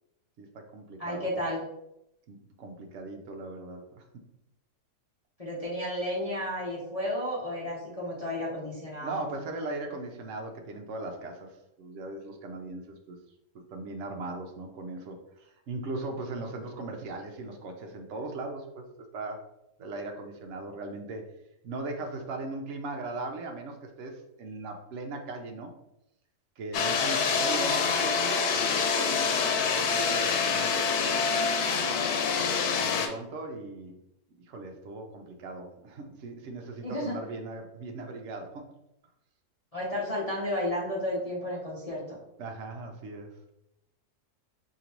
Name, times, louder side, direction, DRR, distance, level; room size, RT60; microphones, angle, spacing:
voice 1, 0.4-1.3 2.3-4.1 9.0-13.2 13.7-18.9 19.1-19.5 19.8-21.3 21.6-25.7 26.6-31.8 32.8-34.0 34.5-38.7 42.4-43.4, right 2 dB, 60° right, 3 dB, 0.9 m, -39 dB
voice 2, 1.0-1.6 5.4-9.2 36.8-37.2 39.7-42.2, left 1 dB, 30° left, -7 dB, 0.9 m, -32 dB
sound 1, 26.7-33.1, left 5 dB, 85° left, 1.1 m, -26 dB
5.1 x 2.9 x 3.0 m, 0.82 s
omnidirectional pair, 1.6 m